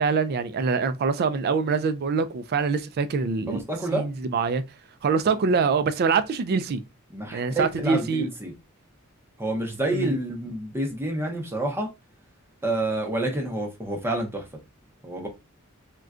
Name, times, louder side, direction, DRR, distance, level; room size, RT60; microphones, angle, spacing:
voice 1, 0.0-3.6 3.9-4.6 5.0-6.8 7.3-8.3 9.9-10.1, right 5 dB, 45° right, 0.3 m, -24 dB
voice 2, 3.5-4.1 7.1-8.5 9.4-11.9 12.6-14.6 15.0-15.3, right 1 dB, 10° right, 0.6 m, -28 dB
3.6 x 2.2 x 2.4 m
head